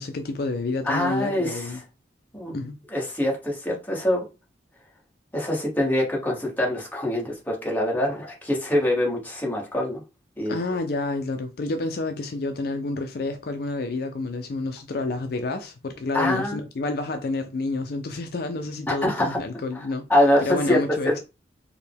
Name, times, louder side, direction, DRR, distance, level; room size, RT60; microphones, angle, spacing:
voice 1, 0.0-1.8 2.5-2.7 10.5-20.0 20.4-21.2, left 3 dB, 55° left, 0.4 m, -29 dB
voice 2, 0.8-1.8 2.3-2.5 2.9-4.3 5.3-10.0 10.4-10.6 16.1-16.6 18.9-19.4 20.1-20.8 21.0-21.2, left 1 dB, 10° left, 1.2 m, -24 dB
4.6 x 2.2 x 3.4 m
head